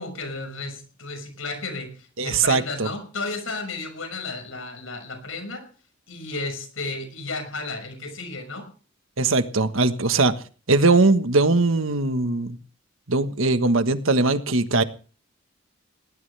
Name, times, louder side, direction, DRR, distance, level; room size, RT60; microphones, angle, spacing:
voice 1, 0.0-5.6 6.1-8.7, left 3 dB, 80° left, 8 dB, 5.9 m, -33 dB
voice 2, 2.2-2.9 9.2-10.3 10.7-12.6 13.1-14.8, right 3 dB, 75° right, 10 dB, 1.4 m, -20 dB
19.5 x 18.5 x 3.4 m, 0.39 s
head